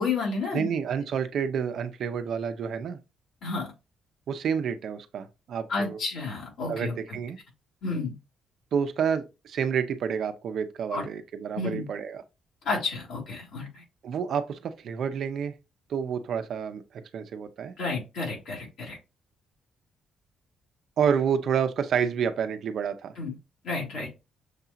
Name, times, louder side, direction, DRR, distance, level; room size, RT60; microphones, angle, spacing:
voice 1, 0.0-0.7 3.4-3.7 5.7-6.9 7.8-8.1 10.9-11.0 11.5-11.9 12.6-13.8 17.8-19.0 23.2-23.3 23.6-24.1, left 4 dB, 75° left, 2.3 m, -31 dB
voice 2, 0.5-3.0 4.3-6.0 6.7-7.4 8.7-12.2 14.0-15.5 15.9-17.7 21.0-23.1, right 7 dB, 65° right, 0.6 m, -29 dB
6.5 x 2.8 x 2.4 m
cardioid pair, 90°, 0 cm